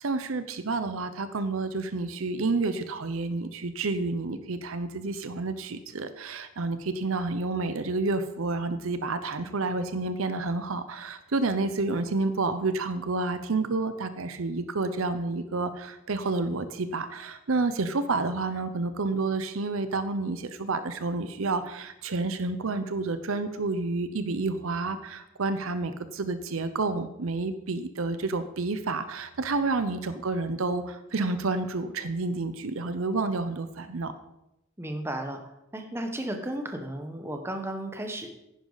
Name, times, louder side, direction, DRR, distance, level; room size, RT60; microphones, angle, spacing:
voice 1, 0.0-34.1, right 3 dB, 70° right, 11 dB, 0.7 m, -29 dB
voice 2, 34.8-35.4 35.7-38.3, right 1 dB, 10° right, 5 dB, 1.0 m, -34 dB
10.5 x 10.0 x 4.0 m, 0.88 s
head